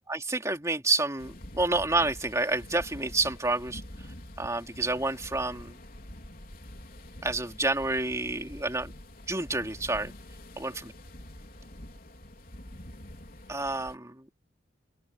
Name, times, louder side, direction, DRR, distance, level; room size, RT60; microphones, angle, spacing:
voice 1, 0.1-5.8 7.2-9.0 9.3-10.1 10.6-10.9 13.5-14.3, right 2 dB, 15° right, 3.2 m, -29 dB
sound 1, 1.2-13.9, left 1 dB, 50° left, 4.0 m, -46 dB
open air
head